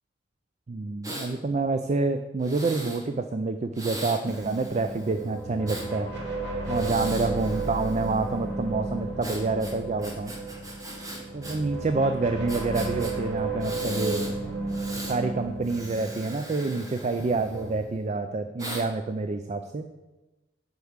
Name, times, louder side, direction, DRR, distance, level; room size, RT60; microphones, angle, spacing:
voice 1, 0.7-6.1 6.7-10.3 11.3-14.3 15.0-19.9, right 3 dB, 35° right, 8 dB, 0.4 m, -28 dB
Breathing, 1.0-1.3 2.4-3.0 3.7-5.9 6.6-8.3 9.2-11.6 11.8-11.9 12.5-13.1 13.6-14.3 14.7-15.2 15.6-17.8 18.6-18.8, right 1 dB, 20° right, 1.3 m, -39 dB
sound 1, 4.2-17.7, right 2 dB, 60° right, 1.9 m, -34 dB
8.0 x 4.8 x 7.1 m, 1.1 s
head